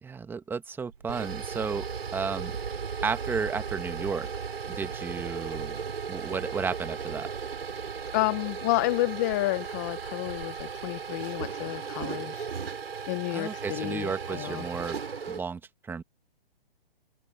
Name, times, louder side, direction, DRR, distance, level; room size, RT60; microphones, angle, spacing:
voice 1, 0.0-1.8 2.1-2.5 3.0-4.3 4.7-5.8 6.1-7.3 13.3-15.0 15.3-16.0, right 5 dB, 5° right, 1.4 m, -33 dB
sound 1, 0.9-15.4, right 6 dB, 80° right, 5.8 m, -36 dB
voice 2, 8.1-12.5 13.1-14.6, left 20 dB, 20° left, 0.5 m, -30 dB
hypercardioid pair, 145°, 30 cm